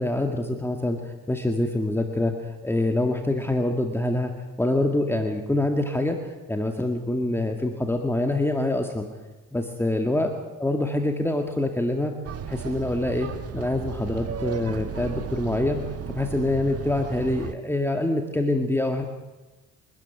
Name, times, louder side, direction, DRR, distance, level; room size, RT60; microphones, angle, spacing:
voice 1, 0.0-4.3 4.6-9.1 9.5-10.3 10.6-12.1 12.5-19.0, left 1 dB, 10° left, 4 dB, 2.1 m, -25 dB
sound 1, 12.2-17.5, right 8 dB, 55° right, 1.4 m, -35 dB
25.0 x 13.0 x 9.8 m, 1.2 s
cardioid pair, 90°, 30 cm